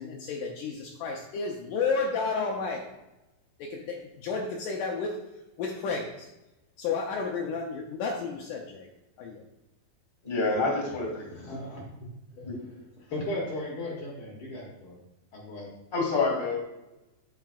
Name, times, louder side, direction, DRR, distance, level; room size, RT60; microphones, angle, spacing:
voice 1, 0.0-2.9 3.6-5.2 5.6-6.3 6.8-8.9 9.2-9.4, left 4 dB, 90° left, 0 dB, 1.8 m, -32 dB
voice 2, 10.2-11.3 12.4-12.5 15.9-16.6, left 3 dB, 20° left, -1 dB, 1.8 m, -27 dB
voice 3, 11.3-11.8 12.3-12.6 13.1-15.0 15.3-15.7, left 1 dB, 65° left, -4 dB, 1.3 m, -36 dB
8.9 x 7.0 x 2.4 m, 0.97 s
omnidirectional pair, 4.6 m